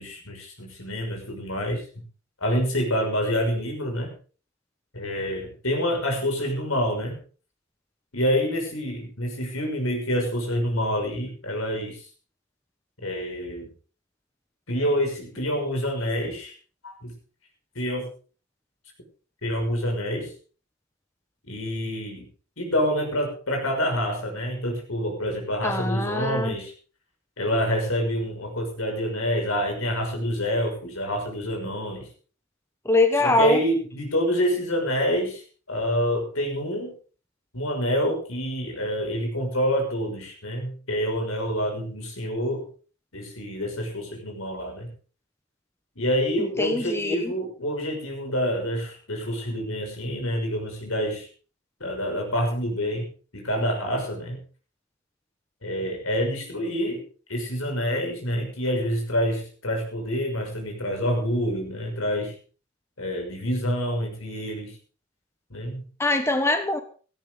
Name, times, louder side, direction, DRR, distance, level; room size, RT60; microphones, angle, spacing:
voice 1, 0.0-1.8 2.4-4.1 4.9-7.2 8.1-12.1 13.0-13.7 14.7-16.5 16.8-17.1 17.7-18.1 19.4-20.3 21.4-22.3 22.6-26.7 27.4-32.1 33.2-35.4 35.7-36.9 37.5-42.7 43.1-44.9 46.0-51.3 51.8-54.4 55.6-57.0 57.3-62.3 63.0-64.7 65.5-65.8, equal, 80° left, 3 dB, 6.2 m, -27 dB
voice 2, 25.6-26.5 32.8-33.6 46.6-47.3 66.0-66.8, left 2 dB, 10° left, 7 dB, 1.2 m, -23 dB
17.0 x 14.0 x 4.0 m, 0.38 s
head